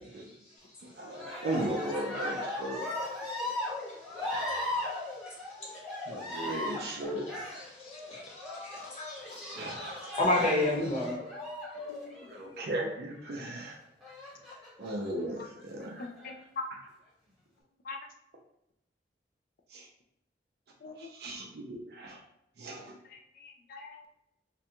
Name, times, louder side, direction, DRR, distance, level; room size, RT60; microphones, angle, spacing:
voice 1, 0.8-2.9 6.1-7.6 9.5-10.2 11.8-11.9 12.3-13.7 14.8-16.1 19.7-19.8 21.2-22.2 22.6-22.9, right 1 dB, 60° right, -1 dB, 0.4 m, -37 dB
Cheering, 1.1-12.8 14.0-14.9 15.6-16.3, left 2 dB, ahead, 0.8 m, -38 dB
voice 2, 8.6-11.2, left 1 dB, 35° left, -5 dB, 0.9 m, -30 dB
voice 3, 11.9-12.3 15.3-15.5 16.0-16.6 17.8-18.0 20.8-21.1 23.0-24.1, left 4 dB, 55° left, 3 dB, 0.4 m, -43 dB
2.6 x 2.2 x 2.8 m, 0.79 s
head